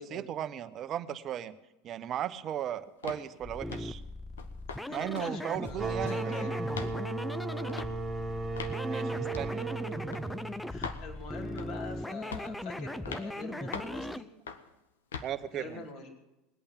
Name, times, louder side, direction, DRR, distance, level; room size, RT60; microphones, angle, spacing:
voice 1, 0.0-1.5 1.8-4.0 4.9-6.4 8.8-9.7 15.2-15.8, right 10 dB, 45° right, 11 dB, 1.0 m, -36 dB
sound 1, 3.0-3.3 3.7-4.0 4.4-4.8 5.1-5.3 5.6-6.3 6.7-7.0 7.7-7.9 8.6-8.8 9.3-9.5 10.1-10.3 10.8-11.0 11.6-11.9 12.3-12.6 13.1-13.3 13.7-14.0 14.5-14.7 15.1-15.3, left 6 dB, 85° left, 1.1 m, -41 dB
sound 2, 3.4-14.2, left 1 dB, 5° left, 0.6 m, -39 dB
voice 2, 4.8-6.6 10.4-14.3 15.5-16.1, left 3 dB, 60° left, 0 dB, 3.0 m, -44 dB
sound 3, 5.8-11.2, right 3 dB, 15° right, 2.1 m, -35 dB
20.0 x 8.6 x 7.3 m, 0.96 s
hypercardioid pair, 85°, 0 cm